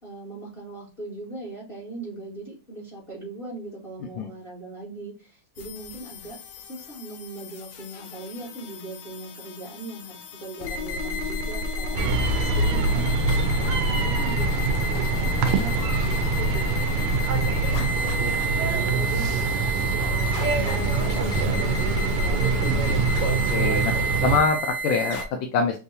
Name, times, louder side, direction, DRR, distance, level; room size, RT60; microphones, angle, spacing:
voice 1, 0.0-22.5, right 2 dB, 25° left, -4 dB, 1.6 m, -40 dB
sound 1, 5.6-25.3, equal, 90° left, 1.8 m, -30 dB
sound 2, 12.0-24.4, right 4 dB, 85° right, 1.6 m, -25 dB
sound 3, 15.1-23.2, right 1 dB, 70° right, 1.6 m, -36 dB
voice 2, 22.7-23.0 23.5-23.9 24.2-25.8, left 5 dB, 75° left, 4 dB, 1.3 m, -24 dB
6.7 x 2.6 x 2.6 m, 0.34 s
omnidirectional pair, 2.4 m